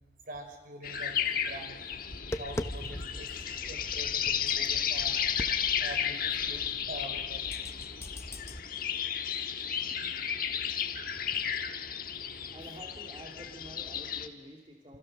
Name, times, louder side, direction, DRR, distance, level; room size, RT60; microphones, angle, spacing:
voice 1, 0.2-1.8 2.4-3.3 3.7-5.2 5.8-7.4, right 1 dB, 50° right, 5 dB, 4.3 m, -44 dB
sound 1, 0.8-14.3, left 8 dB, 50° left, 1.4 m, -33 dB
Tap, 1.9-8.6, left 1 dB, 15° left, 0.8 m, -42 dB
voice 2, 12.5-15.0, equal, 25° right, 0 dB, 2.2 m, -48 dB
28.0 x 25.5 x 6.5 m, 1.3 s
head